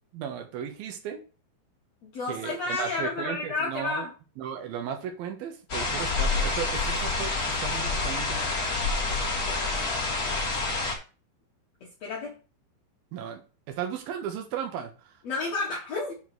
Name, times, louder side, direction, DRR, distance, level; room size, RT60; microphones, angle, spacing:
voice 1, 0.1-1.2 2.3-4.1 4.4-8.5 13.1-13.4 13.7-14.9, right 8 dB, 65° right, 2.8 m, -35 dB
voice 2, 2.0-4.1 9.5-9.8 11.8-12.3 15.2-16.1, left 3 dB, 80° left, 1.5 m, -31 dB
sound 1, 5.7-10.9, left 3 dB, 55° left, 1.0 m, -28 dB
7.7 x 4.6 x 6.1 m
omnidirectional pair, 5.5 m